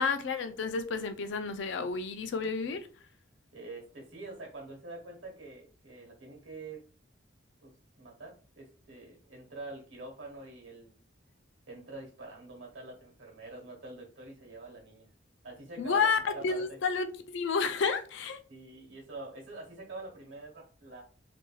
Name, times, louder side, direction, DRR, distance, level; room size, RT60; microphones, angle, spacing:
voice 1, 0.0-2.9 15.8-18.4, left 5 dB, 65° left, 0.4 m, -30 dB
voice 2, 3.5-6.8 7.6-7.7 8.0-10.9 11.7-15.0 15.4-16.8 18.5-21.0, right 2 dB, 75° right, 1.5 m, -45 dB
3.1 x 2.6 x 2.3 m
head